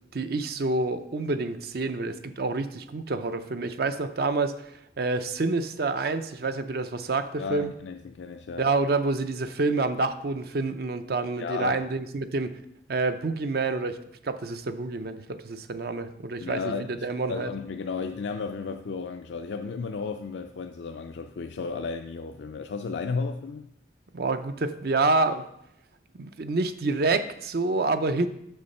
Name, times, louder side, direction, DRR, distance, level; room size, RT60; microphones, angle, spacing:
voice 1, 0.1-4.7 5.0-7.7 8.6-12.5 12.9-14.0 14.2-17.5 24.1-25.5 26.2-28.3, right 3 dB, 60° right, 10 dB, 0.6 m, -28 dB
voice 2, 7.4-8.7 11.4-11.8 16.4-23.7, left 4 dB, 85° left, 5 dB, 0.4 m, -34 dB
6.9 x 6.4 x 5.3 m, 0.80 s
head